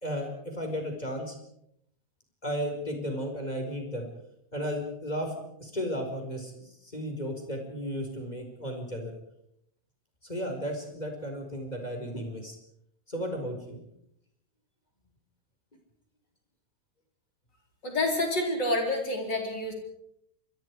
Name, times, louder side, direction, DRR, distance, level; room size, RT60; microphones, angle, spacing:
voice 1, 0.0-1.4 2.4-4.1 4.5-9.1 10.2-12.6 13.1-13.8, equal, 15° left, 3 dB, 4.7 m, -34 dB
voice 2, 17.8-19.7, left 2 dB, 35° left, 2 dB, 4.8 m, -28 dB
27.0 x 24.0 x 4.8 m, 0.74 s
omnidirectional pair, 3.3 m